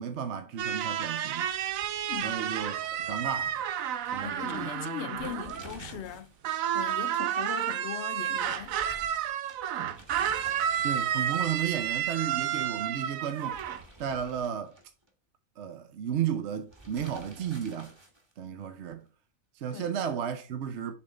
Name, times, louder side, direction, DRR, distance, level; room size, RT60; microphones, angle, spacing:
voice 1, 0.0-1.5 2.2-2.7 3.1-3.6 4.1-4.8 10.8-13.6 14.0-14.7 15.6-17.9 18.4-19.0 19.5-20.9, right 8 dB, 60° right, 1.0 m, -33 dB
sound 1, 0.6-6.2 6.4-13.8, right 10 dB, 85° right, 1.0 m, -31 dB
sound 2, 1.1-3.6 3.9-4.0 5.0-6.4 6.7-6.8 8.4-11.5 13.1-15.1 16.7-18.4, right 1 dB, 20° right, 1.2 m, -52 dB
voice 2, 2.1-2.4 4.2-6.3 6.7-9.2 19.7-19.9, left 11 dB, 65° left, 0.8 m, -40 dB
7.0 x 3.6 x 4.0 m
omnidirectional pair, 1.4 m